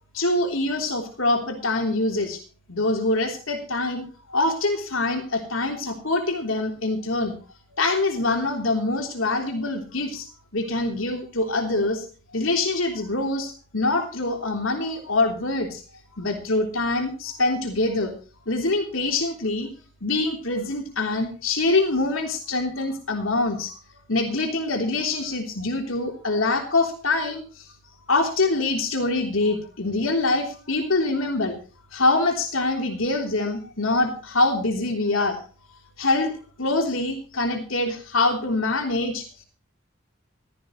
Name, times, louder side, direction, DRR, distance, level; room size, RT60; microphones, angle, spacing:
voice 1, 0.1-2.4 2.7-7.4 7.7-10.3 10.5-12.1 12.3-15.8 16.2-18.1 18.5-19.7 20.0-23.7 24.1-27.7 28.1-31.6 31.9-35.4 36.0-39.3, left 2 dB, 85° left, 3 dB, 3.3 m, -24 dB
16.5 x 13.5 x 3.1 m, 0.38 s
head